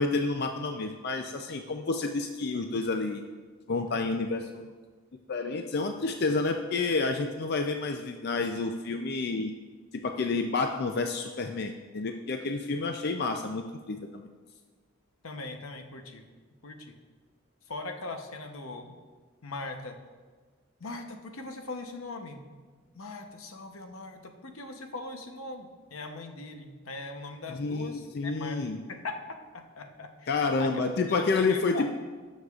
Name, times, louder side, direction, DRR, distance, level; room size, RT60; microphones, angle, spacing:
voice 1, 0.0-3.2 3.7-4.7 5.3-9.5 10.0-14.3 27.5-28.8 30.3-31.9, left 3 dB, 50° left, 5 dB, 0.4 m, -29 dB
voice 2, 15.2-16.2 16.6-16.9 17.7-18.9 19.4-20.0 20.8-22.4 22.9-28.6 28.9-30.7 31.2-31.9, left 3 dB, 85° left, 5 dB, 0.9 m, -40 dB
18.0 x 6.4 x 2.4 m, 1.4 s
head